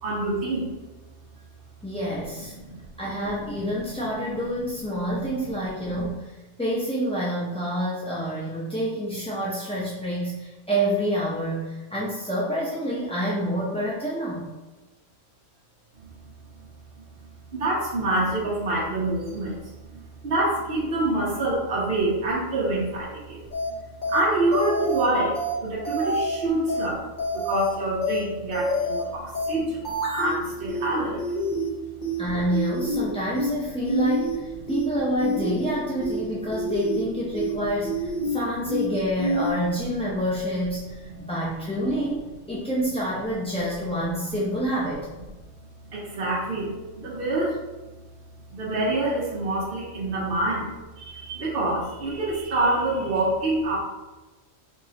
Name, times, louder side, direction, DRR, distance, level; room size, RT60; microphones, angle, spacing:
voice 1, 0.0-0.7 2.6-2.8 16.0-16.1 16.5-16.7 17.0-27.1 27.3-31.2 45.8-47.6 48.5-50.7 51.0-53.8, right 2 dB, 50° right, -5 dB, 0.9 m, -26 dB
voice 2, 1.8-2.5 3.0-6.3 6.6-14.5 32.2-45.1, equal, 10° left, -8 dB, 0.4 m, -28 dB
sound 1, 23.5-23.7 24.0-24.2 24.5-25.0 25.3-25.5 25.8-26.4 26.7-26.9 27.2-27.7 28.0-28.2 28.5-29.0 29.3-29.5 29.8-30.4 30.7-30.9 31.2-31.7 32.0-32.2 32.5-33.0 33.3-33.5 33.8-34.4 34.7-34.9 35.2-35.7 36.0-36.2 36.5-37.0 37.3-37.5 37.8-38.4 38.7-38.9 39.2-39.5, equal, 40° left, 0.9 m, -27 dB
4.5 x 3.0 x 2.8 m, 1.2 s
omnidirectional pair, 1.3 m